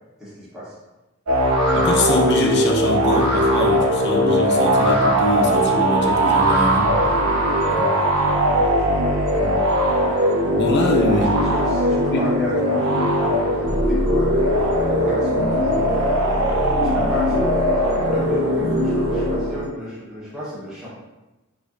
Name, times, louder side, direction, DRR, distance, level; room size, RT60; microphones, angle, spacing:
voice 1, 0.2-0.8 8.2-9.0 9.2-9.4 9.9-10.1 11.1-17.5 18.0-20.9, left 1 dB, 5° right, -11 dB, 1.1 m, -32 dB
sound 1, 1.3-19.7, equal, 80° right, 0.7 m, -19 dB
voice 2, 1.7-6.9 7.7-7.9 9.3-9.7 10.4-11.3 12.1-12.2, left 1 dB, 50° left, 0 dB, 0.5 m, -23 dB
4.2 x 2.6 x 2.6 m, 1.1 s
head